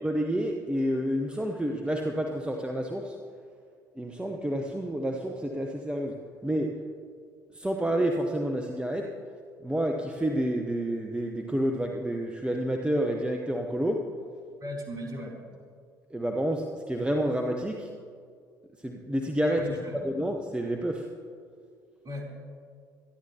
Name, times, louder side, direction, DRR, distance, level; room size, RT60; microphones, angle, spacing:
voice 1, 0.0-3.2 3.9-6.8 7.5-9.2 9.6-14.1 16.1-17.9 18.8-19.7 20.0-21.1, right 1 dB, 10° right, 2 dB, 1.2 m, -29 dB
voice 2, 14.6-15.3 19.6-20.0 22.0-22.4, left 1 dB, 35° right, -1 dB, 3.7 m, -37 dB
24.5 x 11.5 x 2.9 m, 2.1 s
figure-of-eight pair, 55°, 11 cm